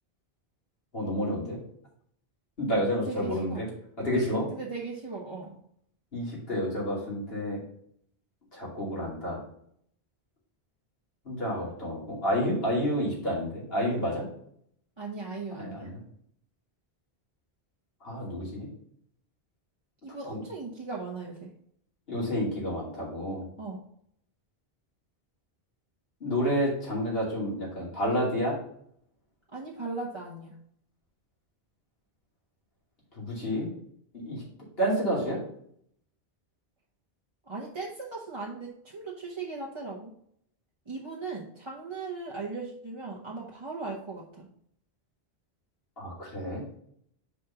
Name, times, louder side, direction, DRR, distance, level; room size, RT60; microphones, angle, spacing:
voice 1, 0.9-1.6 2.6-3.7 4.0-4.5 6.1-7.6 8.5-9.4 11.2-14.2 15.5-16.0 18.0-18.7 20.3-20.4 22.1-23.4 26.2-28.6 33.2-33.7 34.1-34.4 34.8-35.4 46.0-46.7, equal, 65° left, -5 dB, 3.0 m, -29 dB
voice 2, 3.0-3.6 4.5-5.6 15.0-15.9 20.0-21.5 23.6-23.8 29.5-30.5 37.5-40.1 40.9-44.5, right 3 dB, 30° right, -3 dB, 1.0 m, -38 dB
5.2 x 4.2 x 5.7 m, 0.68 s
omnidirectional pair, 1.1 m